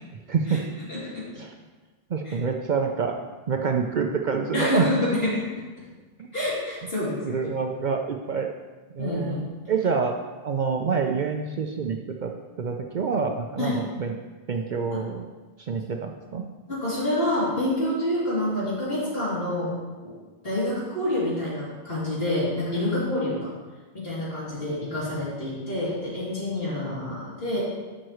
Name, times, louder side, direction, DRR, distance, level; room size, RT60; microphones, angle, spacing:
voice 1, 0.3-0.6 1.4-1.5 2.1-3.2 3.5-4.9 6.2-6.3 7.2-8.5 8.9-9.4 9.7-10.2 10.4-12.3 12.6-14.2 14.5-15.3 15.6-16.4 26.7-26.8, right 5 dB, 55° right, 3 dB, 0.6 m, -27 dB
voice 2, 0.9-1.3 2.2-2.3 4.5-5.5 5.8-5.9 6.3-7.5 9.0-9.4 13.6-13.8 14.9-15.1 16.7-19.7 20.0-20.1 20.4-23.5 23.9-27.6, left 1 dB, 65° left, -8 dB, 3.2 m, -27 dB
11.0 x 6.3 x 3.1 m, 1.3 s
omnidirectional pair, 1.1 m